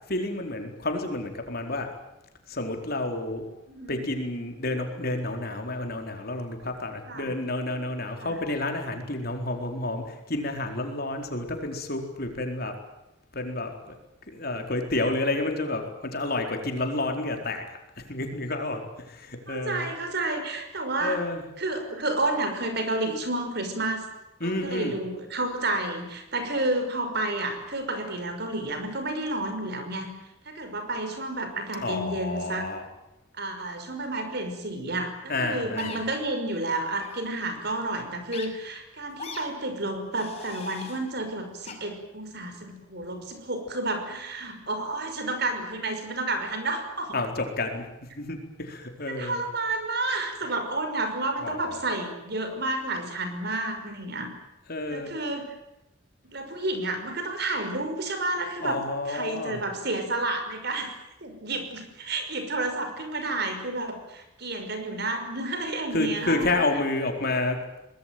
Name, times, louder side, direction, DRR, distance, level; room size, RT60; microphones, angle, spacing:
voice 1, 0.1-1.9 2.5-3.5 3.9-12.7 13.3-14.0 14.3-19.9 21.0-21.4 24.4-25.0 31.8-32.8 35.3-36.0 47.1-47.8 48.1-49.4 51.4-51.8 54.7-55.1 58.6-59.6 65.9-67.6, left 2 dB, 50° left, 4 dB, 4.3 m, -30 dB
voice 2, 3.7-4.0 7.1-7.3 8.2-8.4 19.5-21.2 21.6-24.1 24.4-30.1 30.4-32.7 33.4-47.2 49.1-54.3 54.9-55.5 56.2-58.8 59.1-61.0 61.2-66.5, right 2 dB, 55° right, 6 dB, 5.9 m, -30 dB
sound 1, 35.8-36.0 36.9-37.1 38.3-38.5 39.2-39.4 40.1-41.0 41.7-41.8, left 4 dB, 30° left, 6.1 m, -39 dB
24.5 x 20.5 x 9.4 m, 0.92 s
head